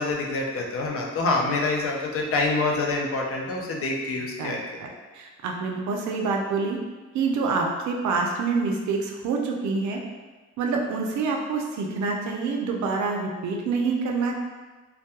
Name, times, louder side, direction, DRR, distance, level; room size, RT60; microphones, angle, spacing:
voice 1, 0.0-4.6, left 3 dB, 50° left, -1 dB, 0.5 m, -26 dB
voice 2, 5.1-6.8 7.1-10.0 10.6-14.3, right 4 dB, 70° right, 1 dB, 0.5 m, -26 dB
2.2 x 2.2 x 2.8 m, 1.3 s
cardioid pair, 90°, 30 cm